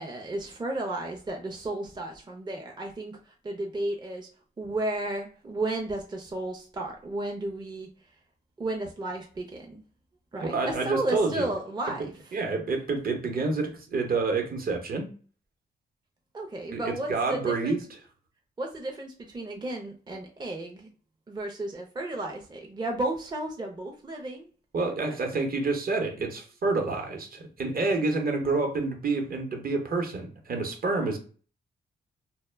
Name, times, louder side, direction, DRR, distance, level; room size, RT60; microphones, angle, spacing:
voice 1, 0.0-4.3 4.6-7.9 8.6-9.8 10.3-12.4 16.3-17.8 18.6-20.9 21.3-24.5, right 2 dB, 25° right, 1 dB, 0.5 m, -33 dB
voice 2, 10.4-11.5 12.3-15.1 16.7-17.8 24.7-31.2, right 3 dB, 55° right, 3 dB, 0.8 m, -28 dB
2.1 x 2.1 x 3.2 m, 0.41 s
cardioid pair, 75°, 18 cm